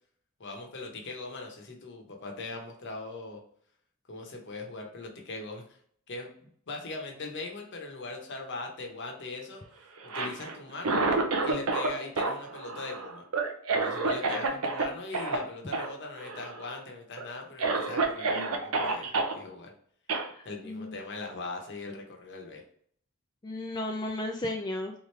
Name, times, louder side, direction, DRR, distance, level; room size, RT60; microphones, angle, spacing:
voice 1, 0.4-3.4 4.1-5.8 6.1-9.6 10.0-11.0 11.4-13.2 13.7-19.7 20.4-22.6, left 3 dB, 55° left, 2 dB, 0.9 m, -40 dB
Cough, 10.0-11.9 12.2-14.8 15.1-15.4 15.7-15.9 16.2-16.7 17.2-17.3 17.6-19.3 20.1-20.3, right 3 dB, 85° right, 0.7 m, -29 dB
voice 2, 20.1-21.0 23.4-24.9, left 1 dB, 20° left, 1 dB, 0.4 m, -35 dB
3.5 x 3.1 x 3.2 m, 0.62 s
head